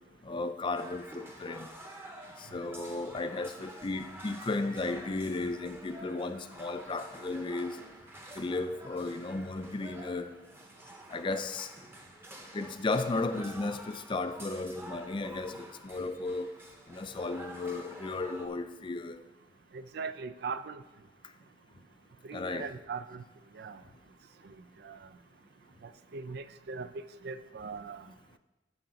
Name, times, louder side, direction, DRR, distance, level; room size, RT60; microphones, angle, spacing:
voice 1, 0.2-1.7 2.4-7.8 8.4-10.4 11.1-11.7 12.5-16.5 16.9-19.2 22.3-22.7, left 3 dB, 25° left, 10 dB, 0.4 m, -34 dB
sound 1, 0.7-18.5, right 1 dB, 15° right, 0.9 m, -49 dB
voice 2, 19.7-20.8 22.2-23.2 23.5-23.8 24.8-25.0 25.8-26.9 27.2-28.1, right 5 dB, 60° right, 13 dB, 0.4 m, -40 dB
13.5 x 5.8 x 3.9 m, 1.1 s
head